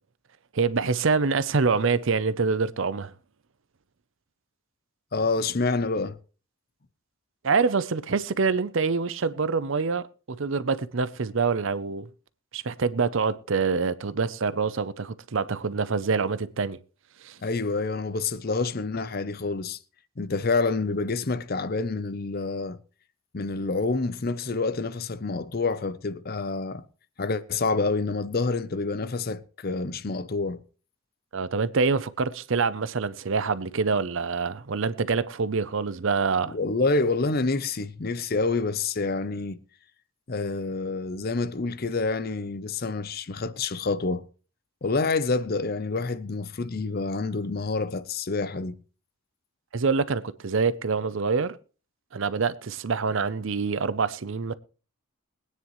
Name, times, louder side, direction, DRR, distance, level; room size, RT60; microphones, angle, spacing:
voice 1, 0.5-3.1 7.4-10.0 10.4-12.1 12.5-16.8 17.2-17.4 31.3-36.5 49.7-51.6 52.1-54.5, right 4 dB, 60° right, 0.6 m, -26 dB
voice 2, 5.1-6.2 17.4-19.8 20.2-22.8 23.3-26.8 27.2-30.6 36.5-39.6 40.3-44.3 44.8-48.8, left 3 dB, 45° left, 0.6 m, -27 dB
22.0 x 9.5 x 3.1 m
head